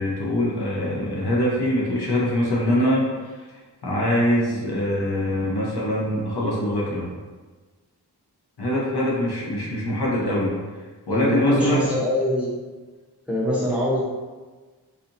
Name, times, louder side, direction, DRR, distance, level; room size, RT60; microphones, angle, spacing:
voice 1, 0.0-3.4 3.8-7.1 8.6-10.5 10.8-11.9, left 1 dB, 70° left, -5 dB, 0.9 m, -23 dB
voice 2, 11.1-12.6 13.3-14.0, equal, 5° right, -7 dB, 0.8 m, -23 dB
4.2 x 2.7 x 2.6 m, 1.3 s
wide cardioid pair, 80°, 41 cm